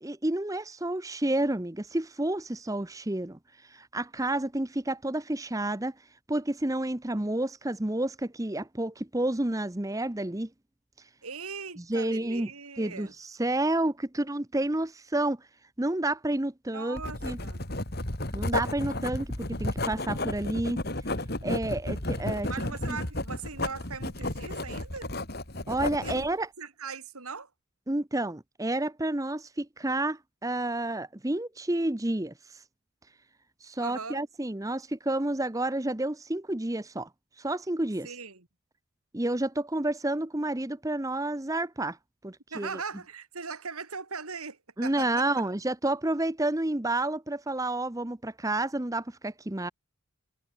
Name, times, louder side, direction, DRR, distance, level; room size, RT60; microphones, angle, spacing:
voice 1, 0.0-5.9 6.3-10.5 11.8-12.5 12.8-15.4 15.8-17.4 18.3-19.3 19.6-20.8 21.4-22.5 25.7-26.5 27.9-32.6 33.6-37.1 37.4-38.1 39.1-42.0 42.2-42.8 44.8-49.7, right 1 dB, 15° right, 0.8 m, -30 dB
voice 2, 11.2-13.1 16.7-17.6 21.4-21.5 22.5-25.1 26.0-26.2 26.6-27.5 33.8-34.2 38.0-38.5 42.5-45.3, right 5 dB, 85° right, 3.3 m, -39 dB
Writing, 17.0-26.3, left 1 dB, 45° left, 3.6 m, -33 dB
head